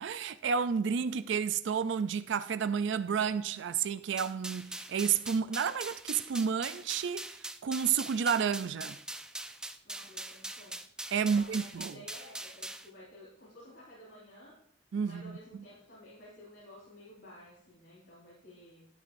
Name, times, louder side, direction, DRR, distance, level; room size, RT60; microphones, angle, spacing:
voice 1, 0.0-9.0 11.1-11.9 14.9-15.2, right 6 dB, 70° right, 0.4 m, -31 dB
sound 1, 4.2-12.9, right 1 dB, 5° right, 0.4 m, -42 dB
voice 2, 9.8-10.8 11.1-11.7 11.9-14.6 15.0-18.9, left 1 dB, 75° left, 4.5 m, -53 dB
12.5 x 11.0 x 2.6 m
head